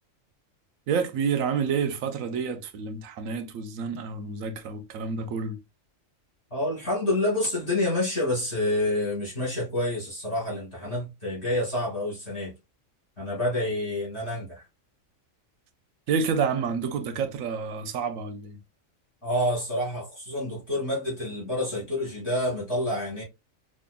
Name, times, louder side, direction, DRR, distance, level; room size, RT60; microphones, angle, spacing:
voice 1, 0.9-5.6 16.1-18.6, right 6 dB, 90° right, 1.1 m, -29 dB
voice 2, 6.5-12.5 13.2-14.7 19.2-23.2, left 1 dB, 40° left, 2.9 m, -28 dB
5.3 x 2.6 x 2.2 m
omnidirectional pair, 1.4 m